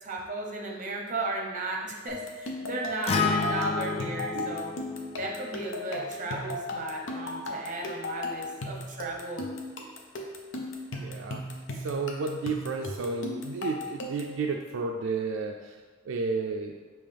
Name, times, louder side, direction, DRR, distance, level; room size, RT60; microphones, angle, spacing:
voice 1, 0.0-4.7 5.2-9.5, right 2 dB, 40° right, 0 dB, 0.7 m, -35 dB
sound 1, 2.1-14.4, left 2 dB, 75° left, 0.6 m, -37 dB
Acoustic guitar, 3.1-7.3, left 4 dB, 30° left, 0.3 m, -32 dB
voice 2, 11.0-11.4 11.7-15.8 16.1-16.7, right 4 dB, 75° right, 2 dB, 0.3 m, -32 dB
5.3 x 2.9 x 3.4 m, 1.4 s
head